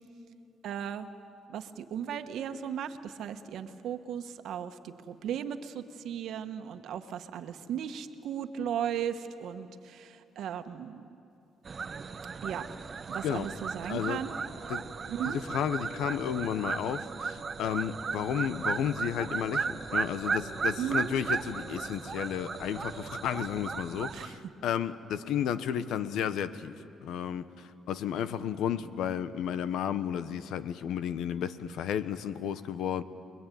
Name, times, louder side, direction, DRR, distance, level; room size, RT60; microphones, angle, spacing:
voice 1, 0.6-1.1 1.5-11.1 12.4-12.7 13.1-14.4 15.1-15.4 20.8-21.1 24.1-24.5, right 9 dB, 75° right, 8 dB, 1.4 m, -36 dB
sound 1, 11.6-24.3, right 5 dB, 40° right, 1.0 m, -35 dB
voice 2, 13.9-14.2 14.7-14.8 15.2-26.7 27.0-33.0, left 9 dB, 85° left, 13 dB, 1.0 m, -32 dB
29.5 x 21.5 x 9.3 m, 2.7 s
cardioid pair, 90°, 0 cm